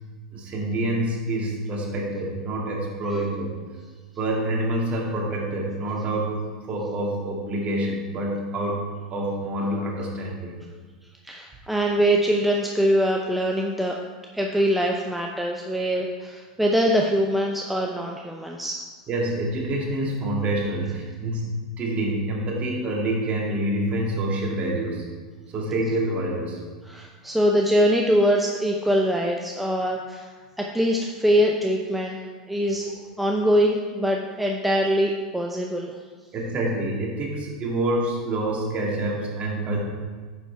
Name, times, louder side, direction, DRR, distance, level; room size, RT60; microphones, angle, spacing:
voice 1, 0.3-3.5 4.2-8.8 9.1-10.5 19.1-25.1 25.5-26.6 32.8-32.9 36.3-39.8, right 1 dB, 35° right, -2 dB, 2.5 m, -27 dB
voice 2, 11.2-14.0 14.3-18.8 26.9-30.3 30.6-32.2 32.5-32.9 33.2-36.0, equal, ahead, 0 dB, 0.7 m, -23 dB
9.9 x 7.2 x 3.5 m, 1.4 s
hypercardioid pair, 90°, 4 cm